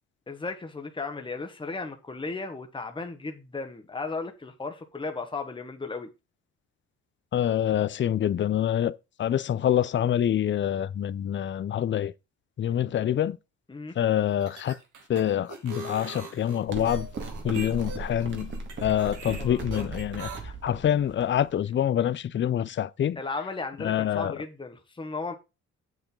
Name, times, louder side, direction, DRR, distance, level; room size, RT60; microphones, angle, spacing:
voice 1, 0.3-6.1 13.7-14.0 19.3-19.9 20.4-20.5 23.2-25.3, left 3 dB, 15° left, 1.4 m, -35 dB
voice 2, 7.3-12.1 12.6-13.4 14.0-14.8 15.1-17.1 17.4-18.5 18.8-23.2 23.8-24.3, left 10 dB, 40° left, 0.5 m, -26 dB
sound 1, 14.3-20.4, right 4 dB, 75° right, 2.6 m, -42 dB
sound 2, 16.7-21.7, right 2 dB, 40° right, 2.0 m, -37 dB
7.8 x 7.2 x 3.8 m
cardioid pair, 90°, 30 cm